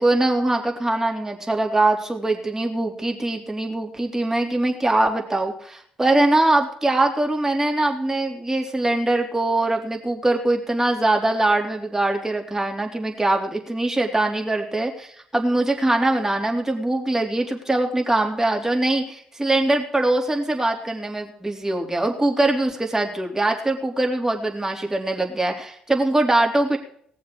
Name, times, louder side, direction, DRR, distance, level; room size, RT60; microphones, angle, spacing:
voice 1, 0.0-26.8, right 2 dB, 15° right, 2 dB, 3.7 m, -22 dB
19.0 x 7.2 x 6.3 m, 0.63 s
hypercardioid pair, 50°, 3 cm